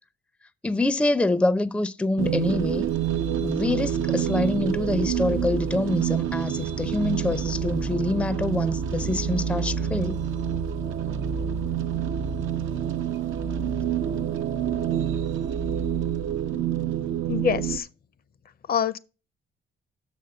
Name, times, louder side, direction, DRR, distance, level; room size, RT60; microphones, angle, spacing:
voice 1, 0.6-2.9 3.4-10.2, left 2 dB, 5° left, 0.5 m, -25 dB
sound 1, 2.2-17.8, right 9 dB, 80° right, 0.7 m, -27 dB
voice 2, 17.3-17.9 18.7-19.0, left 8 dB, 50° left, 0.6 m, -25 dB
6.4 x 5.1 x 6.6 m
cardioid pair, 90°, 20 cm